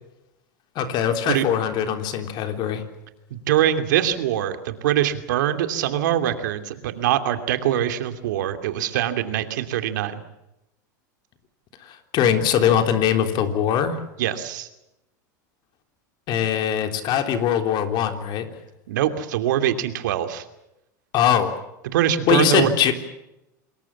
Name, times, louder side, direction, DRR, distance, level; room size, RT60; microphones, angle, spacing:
voice 1, 0.7-2.8 11.9-14.0 16.3-18.5 21.1-21.6 22.3-22.9, left 9 dB, 45° left, 6 dB, 3.5 m, -21 dB
voice 2, 3.3-10.2 14.2-14.7 18.9-20.4 21.8-22.7, right 11 dB, 75° right, 8 dB, 2.7 m, -23 dB
27.5 x 21.5 x 7.3 m, 0.89 s
hypercardioid pair, 110°, 10 cm